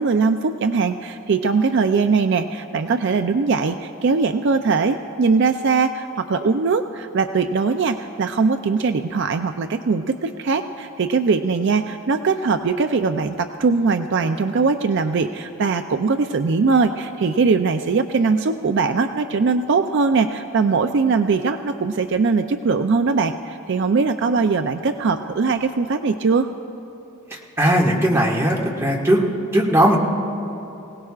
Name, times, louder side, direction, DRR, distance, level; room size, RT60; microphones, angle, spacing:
voice 1, 0.0-26.5, right 4 dB, 55° right, 8 dB, 0.4 m, -21 dB
voice 2, 27.3-29.2 29.5-30.0, right 1 dB, 10° right, -3 dB, 1.6 m, -18 dB
25.0 x 17.5 x 2.4 m, 3.0 s
head